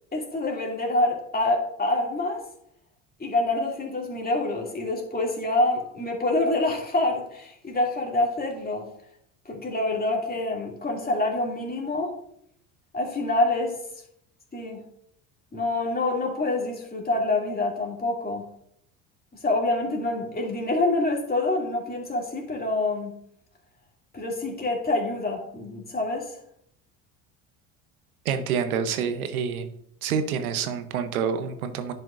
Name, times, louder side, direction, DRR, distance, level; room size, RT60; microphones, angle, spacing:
voice 1, 0.1-2.4 3.2-8.9 9.5-12.1 12.9-13.7 14.5-14.8 15.5-18.4 19.4-23.1 24.1-26.3, left 2 dB, 20° left, -1 dB, 2.5 m, -26 dB
voice 2, 28.2-29.7 30.0-31.9, right 7 dB, 85° right, 10 dB, 0.9 m, -27 dB
10.5 x 5.7 x 2.5 m, 0.71 s
hypercardioid pair, 65°, 42 cm